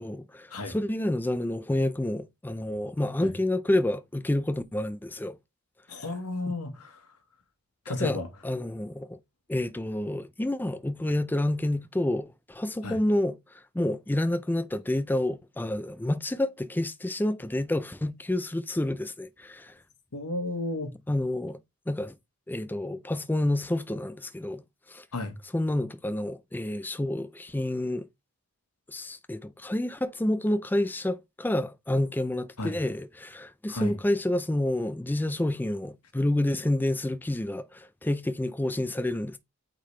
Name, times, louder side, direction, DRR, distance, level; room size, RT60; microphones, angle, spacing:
voice 1, 0.0-5.4 8.0-9.2 9.5-19.8 21.1-21.6 21.9-22.1 22.5-24.6 24.9-25.1 25.5-28.1 28.9-39.4, left 1 dB, 10° left, 0.3 m, -29 dB
voice 2, 5.9-7.0 7.8-8.3 12.8-13.0 20.1-20.9 25.1-25.4 32.6-32.8 33.7-34.0, left 2 dB, 85° left, 1.3 m, -33 dB
8.4 x 3.7 x 3.2 m
head